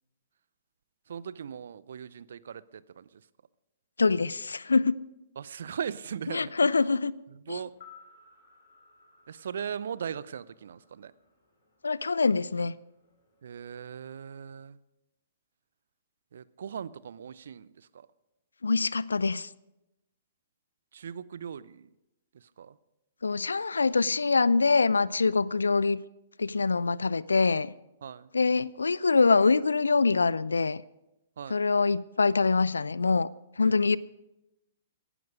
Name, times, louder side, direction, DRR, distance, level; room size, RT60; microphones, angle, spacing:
voice 1, 1.1-3.1 5.4-6.5 7.5-7.7 9.3-11.1 13.4-14.8 16.3-17.7 17.9-18.1 20.9-21.9 22.6-22.7 28.0-28.3 31.4-31.6 33.6-33.8, right 7 dB, 60° right, 0.6 m, -39 dB
voice 2, 4.0-5.0 6.3-7.1 7.5-7.6 11.8-12.7 18.6-19.5 23.2-26.0 26.4-27.7 28.3-30.8 31.5-33.3 33.6-34.0, left 4 dB, 75° left, 0.4 m, -24 dB
sound 1, 7.6-11.8 12.1-12.2, left 6 dB, 60° left, 6.6 m, -57 dB
18.0 x 11.0 x 5.1 m
figure-of-eight pair, 115°, 0 cm